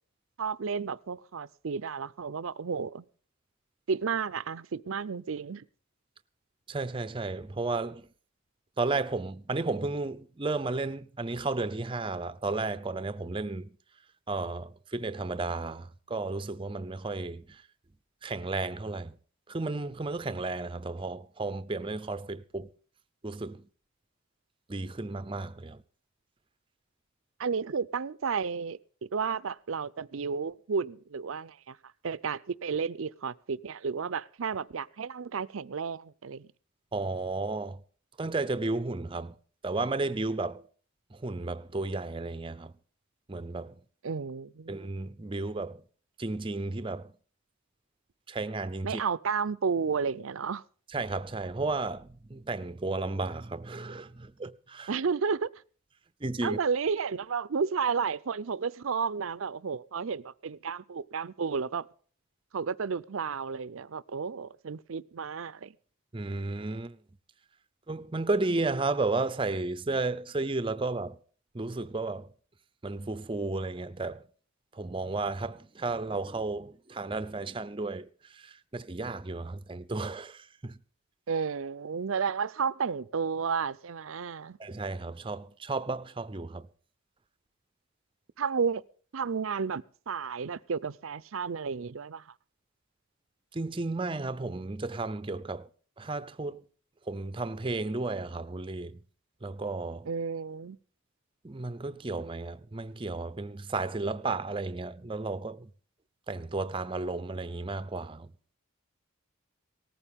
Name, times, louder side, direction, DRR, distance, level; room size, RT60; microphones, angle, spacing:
voice 1, 0.4-3.0 3.9-5.6 27.4-28.8 29.1-31.8 32.0-36.5 44.0-44.7 48.8-50.6 54.9-55.5 56.4-61.9 62.5-65.7 81.3-84.6 88.4-88.8 89.1-92.2 100.1-100.8, right 5 dB, 70° right, 0.5 m, -32 dB
voice 2, 6.7-8.1 8.8-13.8 14.3-17.6 18.2-19.2 19.5-22.7 23.2-23.7 24.7-25.8 36.9-37.8 38.2-39.4 39.6-40.6 41.1-42.7 43.3-43.8 44.7-45.8 46.2-47.1 48.3-49.0 50.9-54.9 56.2-56.6 66.1-67.0 67.9-71.2 71.5-72.3 72.8-74.2 74.7-80.8 84.6-86.7 93.5-95.7 96.0-96.6 97.1-99.0 99.4-100.1 101.4-105.7 106.3-108.3, right 3 dB, 25° right, 0.6 m, -33 dB
18.5 x 14.5 x 3.6 m
head